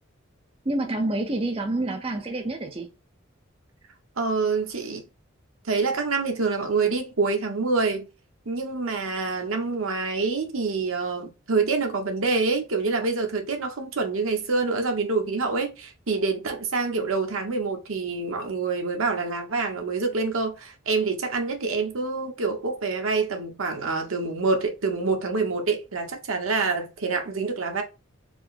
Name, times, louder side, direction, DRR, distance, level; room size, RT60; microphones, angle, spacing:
voice 1, 0.6-2.9, right 2 dB, 25° right, 0.6 m, -28 dB
voice 2, 4.2-5.0 5.7-8.1 8.5-27.8, right 4 dB, 90° right, 1.0 m, -26 dB
4.5 x 2.1 x 4.1 m
head